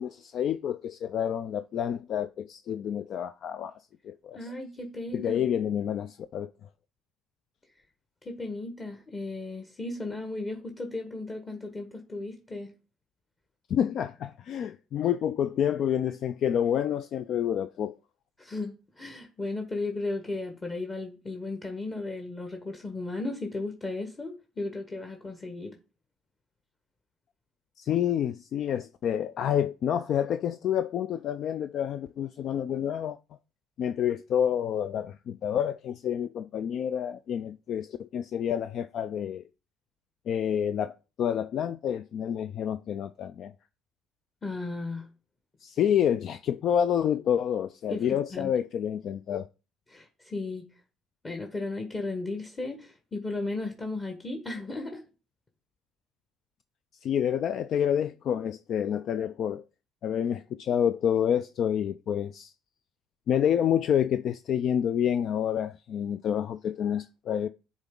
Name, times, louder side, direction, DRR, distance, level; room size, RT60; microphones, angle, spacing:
voice 1, 0.0-3.7 4.0-4.4 5.1-6.5 13.7-17.9 27.8-33.2 33.8-39.4 40.3-43.5 45.6-49.5 57.0-59.6 60.0-62.5 63.3-67.5, left 9 dB, 55° left, 0.3 m, -28 dB
voice 2, 4.3-5.4 8.2-12.7 18.4-25.8 44.4-45.1 47.9-48.5 49.9-50.7 51.2-55.0, left 2 dB, 30° left, 1.3 m, -35 dB
9.8 x 3.6 x 3.7 m
hypercardioid pair, 60°, 0 cm